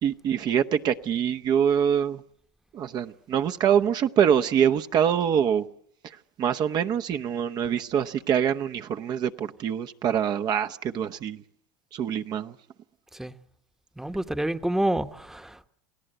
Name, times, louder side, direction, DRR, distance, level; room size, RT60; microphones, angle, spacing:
voice 1, 0.0-2.2 2.7-5.7 6.0-11.4 11.9-12.5, right 8 dB, 45° right, 0.9 m, -25 dB
voice 2, 14.0-15.7, right 1 dB, 5° right, 1.1 m, -28 dB
28.0 x 17.5 x 7.8 m
supercardioid pair, 100°, 10 cm